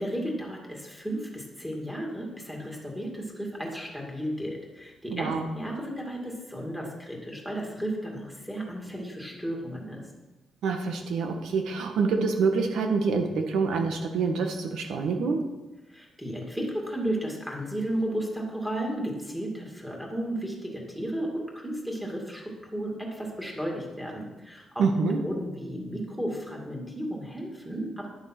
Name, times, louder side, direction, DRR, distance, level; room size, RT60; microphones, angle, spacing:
voice 1, 0.0-10.1 15.9-24.8 25.2-28.1, right 1 dB, 5° right, -1 dB, 2.3 m, -34 dB
voice 2, 5.1-5.5 10.6-15.4 24.8-25.2, right 4 dB, 80° right, 4 dB, 1.6 m, -26 dB
11.0 x 7.3 x 6.1 m, 1.1 s
wide cardioid pair, 160°, 0 cm